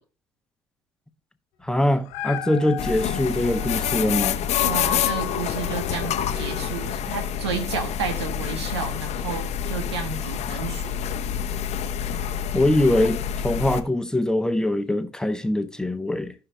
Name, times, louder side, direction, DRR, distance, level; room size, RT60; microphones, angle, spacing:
voice 1, 1.6-4.4 12.5-16.3, left 1 dB, 5° left, 1.1 m, -23 dB
Dog, 1.9-7.2 7.8-7.9, left 10 dB, 70° left, 1.4 m, -33 dB
sound 1, 2.8-13.8, left 9 dB, 55° left, 0.9 m, -28 dB
voice 2, 4.6-11.1, right 5 dB, 80° right, 1.7 m, -31 dB
15.5 x 5.7 x 2.9 m
hypercardioid pair, 55°, 14 cm